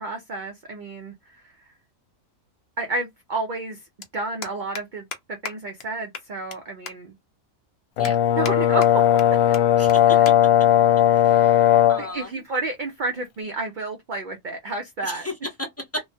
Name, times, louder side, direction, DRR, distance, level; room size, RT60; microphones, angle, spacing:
voice 1, 0.0-1.5 2.8-3.8 4.1-7.1 8.3-8.9 10.1-10.3 12.0-15.3, right 2 dB, 60° right, 0.5 m, -31 dB
sound 1, 3.2-3.3 3.5-3.7 4.0-4.1 4.4-4.8 5.1-5.2 5.4-5.5 5.8-5.9 6.1-6.6 6.8-6.9 7.4-7.5 8.0-8.5 8.8-9.2 9.5-9.6 9.9-10.0 10.2-10.3 10.7-10.9 11.7-11.9, left 6 dB, 55° left, 0.8 m, -35 dB
Brass instrument, 8.0-12.1, left 11 dB, 85° left, 1.0 m, -17 dB
voice 2, 9.8-10.2 11.1-11.6 11.9-12.4 15.0-15.3 15.6-16.0, left 1 dB, 15° left, 0.5 m, -34 dB
3.0 x 2.1 x 2.6 m
omnidirectional pair, 1.5 m